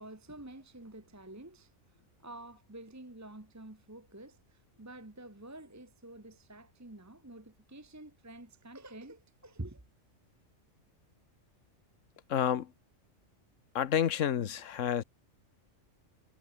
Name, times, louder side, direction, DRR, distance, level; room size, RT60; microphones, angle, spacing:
voice 1, 0.0-1.7 2.2-9.8, right 1 dB, 15° right, 1.3 m, -48 dB
voice 2, 12.3-12.7 13.7-15.0, left 9 dB, 85° left, 1.3 m, -29 dB
omnidirectional pair, 1.3 m